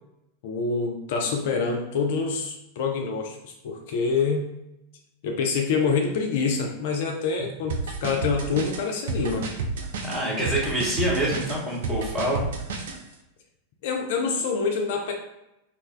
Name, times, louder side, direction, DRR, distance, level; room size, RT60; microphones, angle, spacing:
voice 1, 0.4-4.5 5.2-9.5 13.8-15.1, left 5 dB, 50° left, 2 dB, 0.3 m, -26 dB
sound 1, 7.7-13.0, right 4 dB, 60° right, 0.4 m, -30 dB
voice 2, 10.0-12.4, right 1 dB, 10° right, -4 dB, 0.9 m, -26 dB
2.3 x 2.1 x 3.3 m, 0.89 s
figure-of-eight pair, 90°, 0 cm